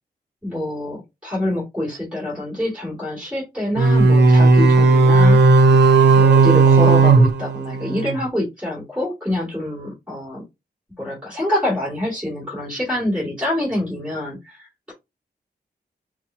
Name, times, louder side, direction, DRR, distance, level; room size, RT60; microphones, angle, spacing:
voice 1, 0.4-5.4 6.1-10.4 11.0-14.9, left 1 dB, 5° right, -4 dB, 2.5 m, -26 dB
sound 1, 3.8-8.2, right 3 dB, 80° right, 0.7 m, -13 dB
5.7 x 2.2 x 2.7 m, 0.22 s
wide cardioid pair, 175°, 17 cm